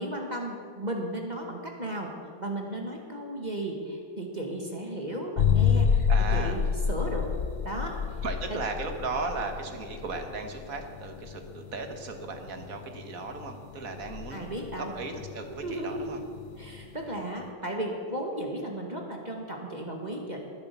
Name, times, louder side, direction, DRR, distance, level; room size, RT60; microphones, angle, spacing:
voice 1, 0.0-2.1 2.4-6.6 6.9-7.3 7.6-8.0 8.5-8.6 14.3-14.9 15.6-16.1 16.6-20.4, right 1 dB, 25° right, 1 dB, 2.0 m, -35 dB
sound 1, 5.4-17.0, left 7 dB, 50° left, 0.8 m, -29 dB
voice 2, 6.1-6.6 8.2-14.4 14.8-16.2, right 3 dB, 55° right, 5 dB, 1.9 m, -36 dB
20.0 x 10.5 x 6.8 m, 2.2 s
omnidirectional pair, 1.9 m